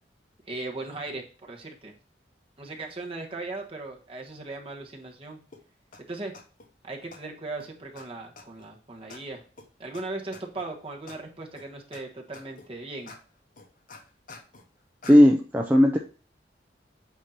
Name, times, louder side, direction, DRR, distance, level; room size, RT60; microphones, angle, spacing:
voice 1, 0.5-1.9 2.6-5.4 6.1-6.3 6.8-9.4 9.8-13.1, right 2 dB, 30° right, 0 dB, 1.3 m, -38 dB
sound 1, 5.5-5.6 5.9-6.0 6.3-6.7 7.1-7.2 7.6-7.7 7.9-8.0 8.4-8.7 9.1-9.2 9.6-9.7 9.9-10.0 10.3-10.6 11.1-11.2 11.6-12.0 12.3-12.7 13.1-13.2 13.6-14.7 15.0-15.2, left 3 dB, 50° left, 1.0 m, -46 dB
voice 2, 15.1-16.0, left 1 dB, 10° right, 0 dB, 0.5 m, -16 dB
8.2 x 2.9 x 5.2 m, 0.36 s
head